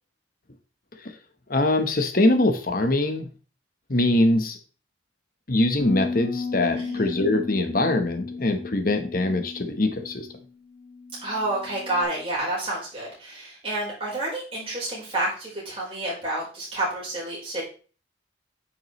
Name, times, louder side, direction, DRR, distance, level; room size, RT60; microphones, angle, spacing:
voice 1, 1.5-3.3 3.9-4.6 5.5-10.3, left 2 dB, 50° left, 7 dB, 1.1 m, -23 dB
sound 1, 5.8-12.0, left 4 dB, 80° left, 2.5 m, -34 dB
voice 2, 6.8-7.1 11.2-17.6, right 1 dB, 30° right, -5 dB, 4.3 m, -29 dB
9.2 x 6.0 x 3.1 m, 0.38 s
head